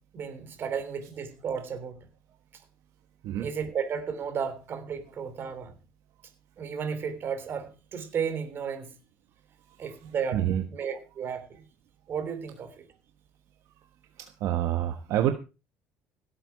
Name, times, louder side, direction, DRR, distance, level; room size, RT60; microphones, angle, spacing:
voice 1, 0.1-2.1 2.5-2.6 3.4-5.7 6.6-8.9 9.8-10.4 10.7-11.6 12.1-12.8, right 7 dB, 40° right, 3.3 m, -33 dB
voice 2, 10.3-10.6 14.2-15.3, right 12 dB, 65° right, 1.3 m, -27 dB
17.0 x 8.7 x 4.7 m
cardioid pair, 145°, 6 cm